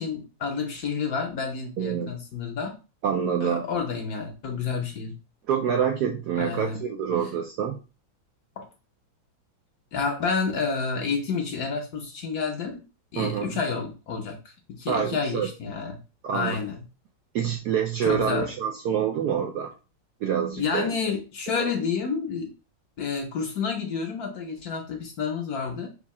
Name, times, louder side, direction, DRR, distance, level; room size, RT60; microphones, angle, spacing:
voice 1, 0.0-2.7 3.4-5.1 6.4-6.8 8.6-8.7 9.9-12.8 13.1-14.4 14.7-16.0 16.3-16.8 18.0-18.5 20.6-22.5 23.0-25.9, left 5 dB, 60° left, 2 dB, 1.1 m, -29 dB
voice 2, 1.8-2.2 3.0-3.6 5.5-7.8 13.2-13.5 14.9-15.5 16.2-16.6 17.3-19.7 20.2-20.9 21.5-21.7, right 8 dB, 75° right, 3 dB, 0.9 m, -26 dB
3.7 x 2.7 x 4.1 m, 0.32 s
omnidirectional pair, 2.2 m